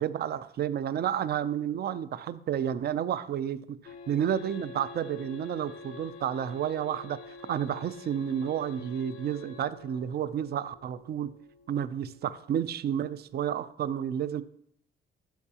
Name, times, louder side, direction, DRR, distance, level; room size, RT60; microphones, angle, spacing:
voice 1, 0.0-3.6 4.1-7.2 7.5-11.3 11.7-14.4, right 9 dB, 55° right, 15 dB, 0.5 m, -31 dB
sound 1, 3.9-13.5, left 4 dB, 85° left, 0.8 m, -48 dB
11.5 x 4.6 x 2.9 m, 0.69 s
cardioid pair, 90°, 20 cm